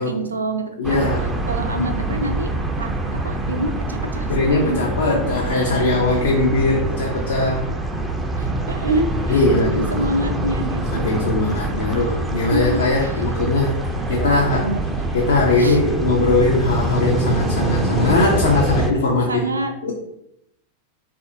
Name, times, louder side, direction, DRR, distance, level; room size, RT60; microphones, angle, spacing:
voice 1, 0.0-1.0 1.5-2.5 2.8-2.9 3.2-5.2 8.4-9.4 9.7-11.1 11.9-12.1 12.5-13.2 14.1-14.8 15.6-15.8 19.3-19.7, right 1 dB, 75° right, 5 dB, 0.4 m, -26 dB
voice 2, 0.8-1.3 4.3-7.6 9.3-10.1 10.9-13.8 14.1-14.7 15.1-19.5 19.8-19.9, left 2 dB, 65° left, -2 dB, 0.5 m, -20 dB
sound 1, 0.8-18.9, right 1 dB, 10° right, 0.3 m, -24 dB
3.3 x 2.4 x 2.6 m, 0.80 s
figure-of-eight pair, 90°, 0 cm